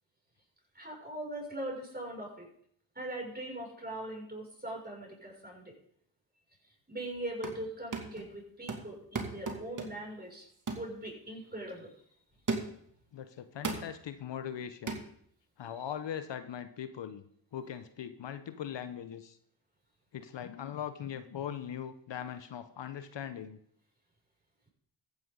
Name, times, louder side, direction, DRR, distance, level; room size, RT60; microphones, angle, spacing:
voice 1, 0.7-2.5 2.9-5.7 6.9-10.5 10.7-11.9, right 1 dB, 20° right, -2 dB, 6.5 m, -41 dB
sound 1, 7.2-7.7 7.9-8.3 8.7-10.1 10.7-10.9 11.4-11.6 12.5-12.9 13.6-14.0 14.9-15.1, right 3 dB, 40° right, 2.5 m, -36 dB
voice 2, 13.1-15.0 15.6-17.2 17.5-19.4 20.1-23.6, left 9 dB, 60° left, 11 dB, 1.0 m, -40 dB
14.5 x 10.5 x 4.0 m, 0.67 s
supercardioid pair, 45°, 48 cm